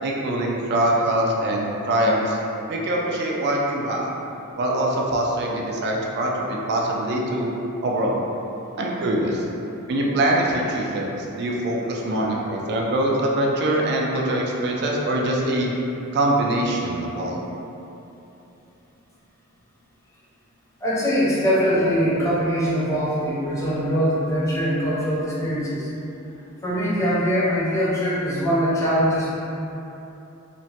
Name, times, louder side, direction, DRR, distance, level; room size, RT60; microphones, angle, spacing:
voice 1, 0.0-2.4 2.7-4.1 4.6-7.5 7.8-8.2 8.8-9.4 9.9-15.7 16.1-17.4, right 1 dB, 50° right, -1 dB, 0.3 m, -23 dB
voice 2, 20.8-25.9 26.6-29.3, equal, 15° left, -8 dB, 0.5 m, -22 dB
2.9 x 2.1 x 2.8 m, 3.0 s
head